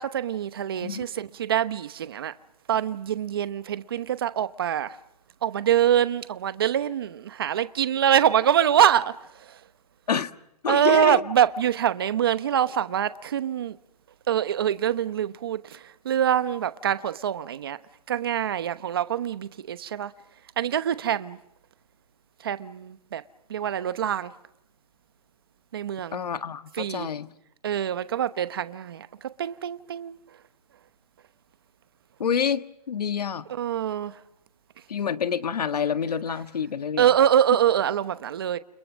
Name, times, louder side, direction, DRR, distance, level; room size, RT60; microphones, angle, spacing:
voice 1, 0.0-2.3 2.7-5.0 5.4-9.1 9.4-9.6 10.7-13.8 14.3-17.8 18.1-20.1 20.6-21.4 22.4-23.2 23.5-24.3 25.7-26.2 26.8-27.1 27.6-30.2 33.5-34.1 37.0-38.6, right 10 dB, 35° right, 0.9 m, -24 dB
voice 2, 10.6-11.2 26.1-27.3 32.2-33.5 34.9-37.1, left 7 dB, 85° left, 1.7 m, -28 dB
30.0 x 28.5 x 6.3 m
hypercardioid pair, 180°, 20 cm